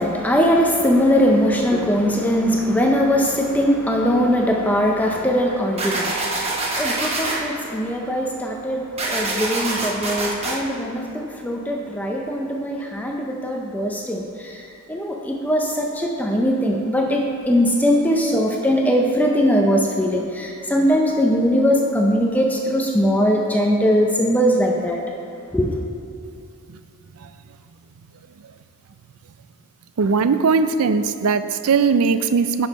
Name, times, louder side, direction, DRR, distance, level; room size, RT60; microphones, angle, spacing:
voice 1, 0.0-25.0 25.5-25.8, equal, 5° left, 0 dB, 0.5 m, -20 dB
sound 1, 5.8-7.4 9.0-10.5, right 2 dB, 30° right, 1.0 m, -25 dB
voice 2, 30.0-32.7, right 5 dB, 90° right, 11 dB, 0.4 m, -19 dB
10.0 x 6.4 x 4.2 m, 2.6 s
head